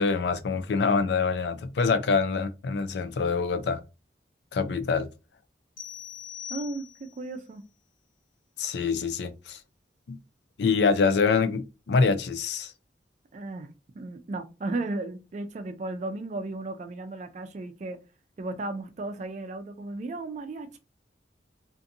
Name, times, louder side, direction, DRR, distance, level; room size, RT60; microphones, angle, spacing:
voice 1, 0.0-3.8 4.5-5.1 8.6-9.6 10.1-10.2 10.6-12.7, left 4 dB, 75° left, 0.4 m, -25 dB
sound 1, 5.8-7.3, left 9 dB, 50° left, 1.2 m, -41 dB
voice 2, 6.5-7.6 13.3-18.0 18.4-20.8, right 2 dB, 40° right, 0.3 m, -35 dB
2.5 x 2.5 x 2.6 m
head